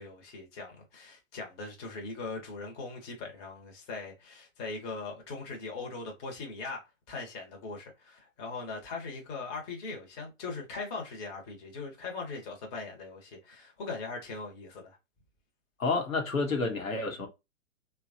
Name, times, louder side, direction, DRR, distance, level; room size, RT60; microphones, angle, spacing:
voice 1, 0.0-15.0, left 3 dB, 25° left, 0.9 m, -40 dB
voice 2, 15.8-17.3, left 3 dB, 90° left, 1.1 m, -29 dB
3.0 x 2.3 x 2.4 m
hypercardioid pair, 125°, 40 cm